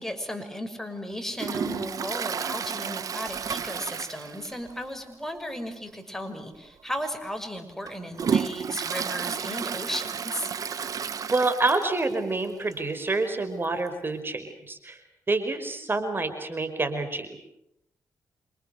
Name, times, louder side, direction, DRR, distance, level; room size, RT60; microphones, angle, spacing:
voice 1, 0.0-10.5, equal, 5° left, 6 dB, 6.4 m, -35 dB
Toilet flush, 1.4-4.8 5.1-5.2 5.6-5.7 6.5-6.7 7.2-12.1 12.4-12.5 12.7-12.8 13.9-14.0, right 7 dB, 65° right, 1.6 m, -31 dB
voice 2, 11.3-15.0 15.3-17.4, right 3 dB, 35° right, 8 dB, 5.2 m, -27 dB
29.0 x 27.0 x 6.8 m, 0.79 s
cardioid pair, 65°, 7 cm